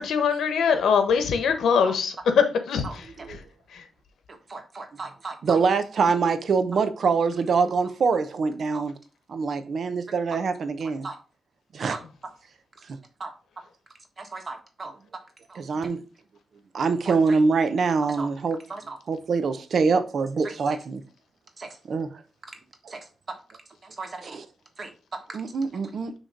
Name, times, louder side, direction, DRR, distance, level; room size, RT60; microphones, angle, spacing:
voice 1, 0.0-2.1 2.7-2.9 3.7-3.8, left 6 dB, 85° left, 1.1 m, -22 dB
voice 2, 4.3-5.6 8.7-8.8 10.8-11.2 11.9-12.0 13.2-13.3 14.2-14.9 15.5-15.6 17.0-17.4 18.0-18.3 18.7-19.0 20.4-20.5 21.6-21.8 22.9-23.1 24.0-24.4 24.8-24.9 25.3-25.4, right 3 dB, 40° right, 1.4 m, -38 dB
voice 3, 5.4-8.9 9.3-11.1 11.7-12.0 15.6-16.0 16.7-18.6 19.1-21.0 21.9-22.1 24.3-24.4 25.3-26.1, right 4 dB, 60° right, 0.7 m, -24 dB
6.5 x 3.1 x 5.1 m
cardioid pair, 95°, 0 cm